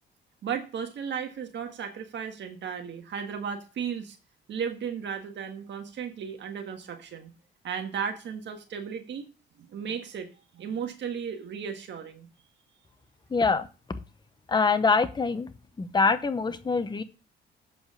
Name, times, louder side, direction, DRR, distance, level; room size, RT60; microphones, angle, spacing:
voice 1, 0.4-4.2 4.5-7.3 7.6-9.3 9.6-10.3 10.5-12.3, right 7 dB, 65° right, 6 dB, 1.6 m, -35 dB
voice 2, 13.3-13.7 14.5-15.5 15.8-17.0, left 4 dB, 20° left, 10 dB, 0.8 m, -24 dB
7.9 x 5.0 x 6.4 m, 0.33 s
cardioid pair, 90°, 20 cm